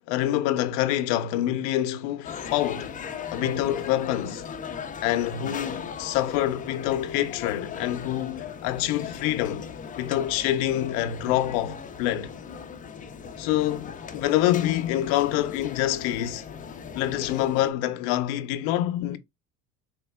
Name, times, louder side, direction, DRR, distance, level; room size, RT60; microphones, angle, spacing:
voice 1, 0.1-3.0 3.3-4.5 5.0-9.7 10.0-12.3 13.4-16.4 16.9-19.2, left 13 dB, 90° left, 0.6 m, -26 dB
sound 1, 2.2-17.7, left 6 dB, 25° left, 0.5 m, -38 dB
4.2 x 3.4 x 2.2 m
cardioid pair, 125°, 36 cm